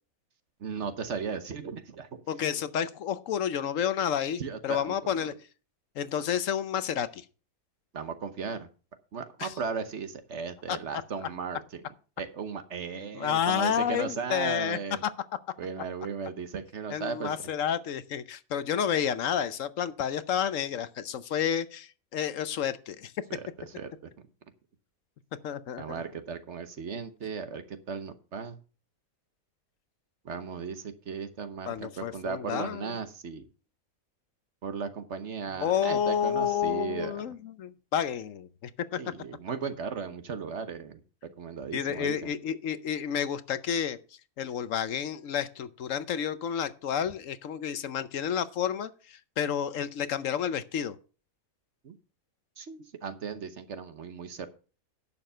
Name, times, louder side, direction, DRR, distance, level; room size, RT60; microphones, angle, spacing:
voice 1, 0.6-2.2 4.4-5.3 7.9-8.7 9.1-11.8 12.2-15.0 15.6-17.3 23.3-23.9 25.8-28.6 30.2-33.5 34.6-37.2 39.0-41.0 41.4-42.3 51.8-51.9 52.6-54.5, right 6 dB, 55° right, 10 dB, 1.2 m, -36 dB
voice 2, 2.3-5.4 6.0-7.2 9.4-9.5 10.7-11.0 13.1-15.1 16.9-23.1 25.4-26.0 31.7-32.9 35.6-38.5 41.7-44.0 44.4-50.9, left 8 dB, 70° left, 14 dB, 1.0 m, -30 dB
11.0 x 7.1 x 5.5 m, 0.37 s
omnidirectional pair, 1.5 m